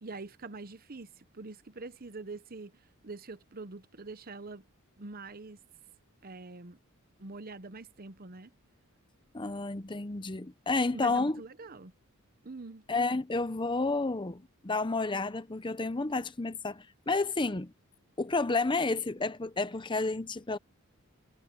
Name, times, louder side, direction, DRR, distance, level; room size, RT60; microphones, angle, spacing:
voice 1, 0.0-4.7 5.0-5.6 6.2-6.8 7.2-8.5 10.9-11.9 12.4-12.8, right 3 dB, 40° right, 0.9 m, -44 dB
voice 2, 9.3-11.4 12.9-17.7 18.2-20.6, left 3 dB, 20° left, 0.7 m, -31 dB
head